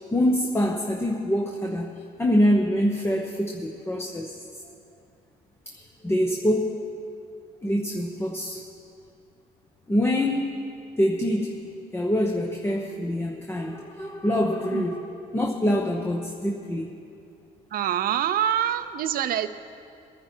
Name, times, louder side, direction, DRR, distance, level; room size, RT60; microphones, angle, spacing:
voice 1, 0.1-4.4 5.7-6.9 7.6-8.6 9.9-10.6 11.0-11.6 11.9-16.9, equal, 15° left, 1 dB, 1.0 m, -25 dB
voice 2, 17.7-19.5, right 10 dB, 60° right, 11 dB, 0.7 m, -25 dB
22.0 x 10.0 x 4.5 m, 2.5 s
cardioid pair, 110°, 17 cm